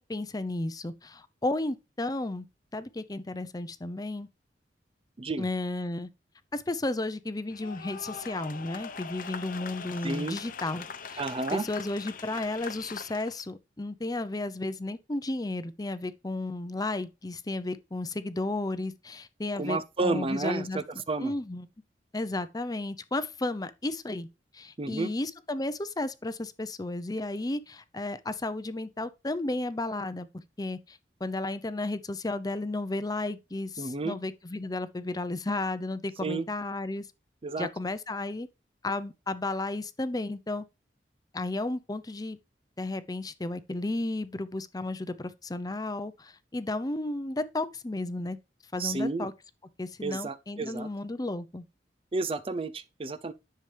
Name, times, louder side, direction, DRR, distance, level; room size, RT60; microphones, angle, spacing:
voice 1, 0.0-2.5 2.7-4.3 5.4-6.1 6.5-11.2 11.5-20.8 21.2-21.7 22.1-24.3 24.5-30.3 30.6-37.1 37.6-38.5 38.8-40.6 41.3-42.4 42.8-48.4 48.7-49.3 49.8-51.6, left 2 dB, 20° left, 0.6 m, -33 dB
sound 1, 7.5-13.4, left 6 dB, 50° left, 0.9 m, -42 dB
voice 2, 10.0-10.4 11.2-11.6 19.6-21.3 24.8-25.1 33.8-34.2 36.2-36.5 37.4-37.7 48.8-49.3 50.0-50.9 52.1-53.3, right 3 dB, 30° right, 0.5 m, -31 dB
10.5 x 6.9 x 3.3 m
head